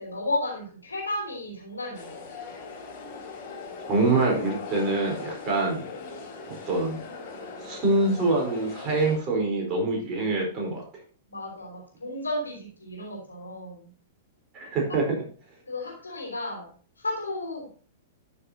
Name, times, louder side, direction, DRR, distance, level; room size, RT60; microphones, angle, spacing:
voice 1, 0.0-2.2 11.3-13.9 14.9-15.0 15.7-17.7, left 1 dB, 75° left, -3 dB, 3.9 m, -33 dB
sound 1, 1.9-9.2, left 4 dB, 40° left, 3.8 m, -40 dB
voice 2, 3.9-5.8 6.6-7.0 7.6-10.8 14.5-15.2, right 3 dB, 30° right, -1 dB, 4.2 m, -25 dB
12.5 x 6.6 x 2.8 m, 0.41 s
figure-of-eight pair, 105°, 0 cm